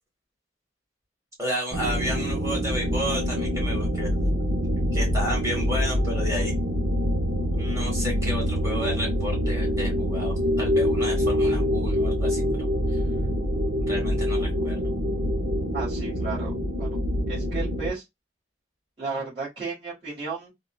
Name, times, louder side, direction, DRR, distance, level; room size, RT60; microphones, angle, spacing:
voice 1, 1.4-4.1 4.9-6.5 7.5-13.0 13.9-14.8, equal, 15° right, 1.3 m, -32 dB
sound 1, 1.7-17.9, equal, 75° right, 0.8 m, -25 dB
voice 2, 15.7-16.9 17.3-18.0 19.0-20.5, right 4 dB, 35° right, 1.6 m, -34 dB
3.7 x 2.1 x 2.3 m
head